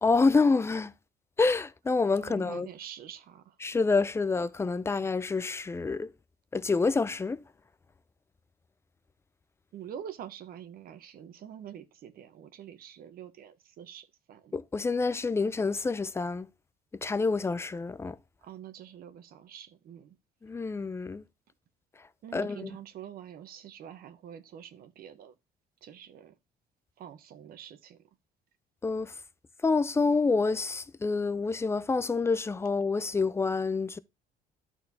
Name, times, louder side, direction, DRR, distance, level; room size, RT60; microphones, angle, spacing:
voice 1, 0.0-0.9 1.4-2.7 3.6-6.1 6.5-7.4 14.5-16.5 17.0-18.2 20.4-21.2 22.3-22.7 28.8-29.1 29.6-34.0, left 4 dB, 15° left, 0.5 m, -27 dB
voice 2, 2.2-3.6 9.7-14.5 18.4-20.2 22.2-25.3 25.8-26.4 27.0-28.0, right 9 dB, 60° right, 0.9 m, -46 dB
12.5 x 4.4 x 2.7 m
cardioid pair, 110°, 17 cm